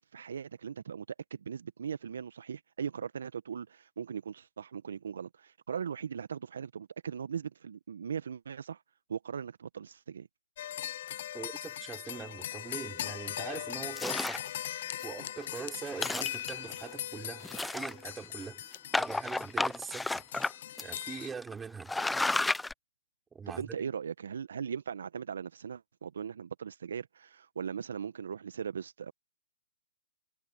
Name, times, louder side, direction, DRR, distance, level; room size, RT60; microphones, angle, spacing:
voice 1, 0.0-8.8 9.1-10.3 23.5-29.1, right 7 dB, 70° right, 1.3 m, -39 dB
sound 1, 10.6-21.3, left 11 dB, 55° left, 0.9 m, -40 dB
voice 2, 11.3-14.4 15.0-20.3 20.8-21.9 23.3-23.9, right 5 dB, 10° right, 4.6 m, -42 dB
sound 2, 14.0-14.5 15.0-15.1 15.4-15.6 15.9-16.7 17.4-18.2 18.9-20.5 20.8-20.9 21.4-21.5 21.8-22.7, left 2 dB, 5° left, 1.0 m, -31 dB
hypercardioid pair, 125°, 0 cm